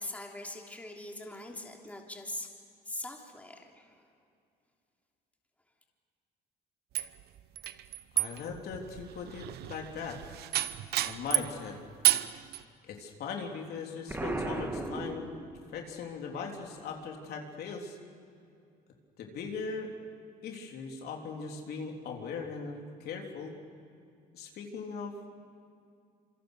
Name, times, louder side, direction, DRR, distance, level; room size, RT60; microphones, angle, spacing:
voice 1, 0.0-2.5 2.8-4.1, left 1 dB, 10° left, 0 dB, 3.1 m, -42 dB
sound 1, 6.9-11.6 12.0-12.6, right 15 dB, 70° right, 0.9 m, -31 dB
voice 2, 8.1-10.2 11.0-11.8 12.8-15.3 15.7-18.0 19.2-19.9 20.4-23.5 24.3-25.3, left 5 dB, 70° left, 1 dB, 3.5 m, -39 dB
Explosion, 14.1-15.9, right 2 dB, 10° right, 2.3 m, -36 dB
27.0 x 24.5 x 6.6 m, 2.4 s
cardioid pair, 110°, 17 cm